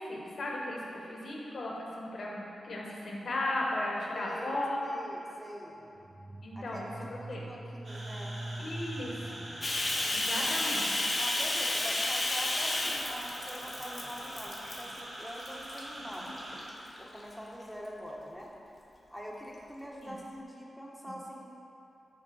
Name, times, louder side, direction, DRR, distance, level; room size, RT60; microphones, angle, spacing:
voice 1, 0.0-4.8 6.4-6.9 7.3-7.4 8.6-9.1 10.1-10.9 15.9-16.1 20.0-20.1, left 1 dB, 65° left, -2 dB, 1.1 m, -36 dB
voice 2, 4.1-5.8 6.5-8.4 10.4-10.5 11.2-16.4 17.0-18.5 19.1-21.6, equal, ahead, -3 dB, 1.2 m, -44 dB
sound 1, 6.0-10.8, right 1 dB, 30° right, 0.5 m, -43 dB
sound 2, 7.8-16.7, right 1 dB, 55° right, 1.5 m, -44 dB
Bathtub (filling or washing), 9.6-15.0 15.4-15.8 16.4-17.2, left 2 dB, 45° left, 0.8 m, -32 dB
6.6 x 3.6 x 5.5 m, 2.8 s
cardioid pair, 50°, 0 cm